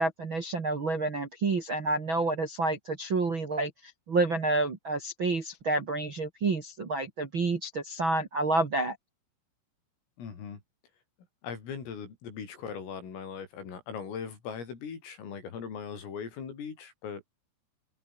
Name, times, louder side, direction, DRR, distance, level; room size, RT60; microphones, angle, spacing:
voice 1, 0.0-8.9, right 3 dB, 40° right, 1.8 m, -29 dB
voice 2, 10.2-10.6 11.4-17.2, left 6 dB, 80° left, 8.2 m, -39 dB
open air
omnidirectional pair, 5.8 m